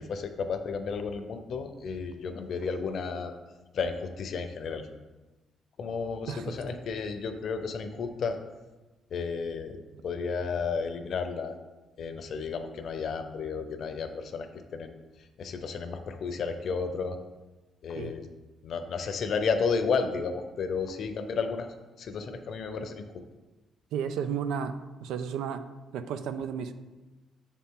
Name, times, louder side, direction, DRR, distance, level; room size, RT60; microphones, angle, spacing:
voice 1, 0.1-3.3 3.7-4.9 5.8-8.4 9.1-11.6 12.0-14.9 15.4-17.2 17.8-18.3 18.6-21.7 22.0-23.2, left 5 dB, 60° left, 8 dB, 0.7 m, -32 dB
voice 2, 23.9-24.7 25.0-25.6 25.9-26.7, right 7 dB, 90° right, 10 dB, 0.5 m, -32 dB
7.3 x 4.2 x 3.8 m, 1.2 s
cardioid pair, 90°, 0 cm